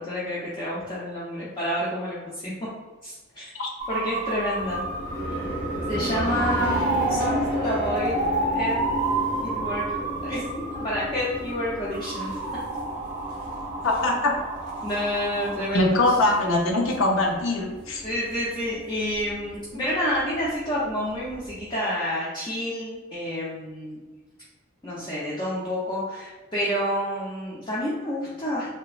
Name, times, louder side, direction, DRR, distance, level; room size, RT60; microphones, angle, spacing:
voice 1, 0.0-2.5 3.0-3.4 3.9-4.8 5.9-6.7 7.1-8.2 8.5-8.8 9.4-10.4 10.7-12.3 14.8-16.0 18.0-24.0 24.8-28.8, equal, 25° left, -8 dB, 0.5 m, -29 dB
sound 1, 3.8-15.7, right 2 dB, 35° right, 0.4 m, -30 dB
sound 2, 4.6-21.7, equal, 50° left, 0.7 m, -34 dB
voice 2, 13.8-14.3 15.7-18.0, left 2 dB, 85° left, 1 dB, 0.5 m, -22 dB
3.2 x 2.0 x 2.4 m, 1.2 s
head